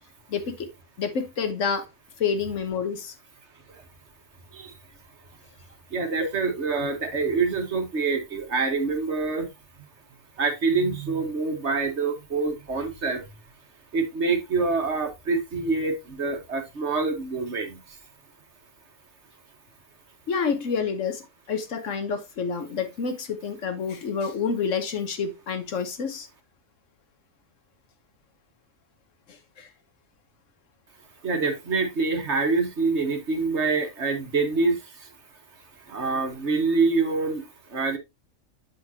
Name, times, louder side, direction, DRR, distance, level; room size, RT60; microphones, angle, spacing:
voice 1, 0.3-0.7 1.0-1.9 2.2-3.1 6.2-6.3 20.3-26.3 29.6-29.7, left 6 dB, 65° left, 1.4 m, -28 dB
voice 2, 5.9-9.5 10.4-13.2 13.9-17.9 31.2-35.1 35.9-38.0, right 4 dB, 55° right, 1.6 m, -26 dB
7.4 x 6.4 x 2.8 m
omnidirectional pair, 1.4 m